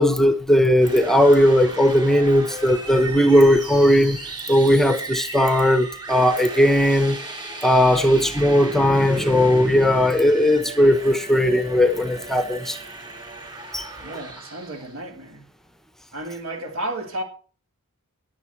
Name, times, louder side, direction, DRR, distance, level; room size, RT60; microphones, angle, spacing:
voice 1, 0.0-4.2 4.5-7.2 7.6-12.8 13.7-13.9, equal, ahead, 0.9 m, -17 dB
sound 1, 0.8-14.9, right 2 dB, 20° right, 4.1 m, -36 dB
voice 2, 14.0-15.4 16.1-17.2, right 1 dB, 65° right, 3.5 m, -32 dB
15.0 x 10.5 x 4.5 m
head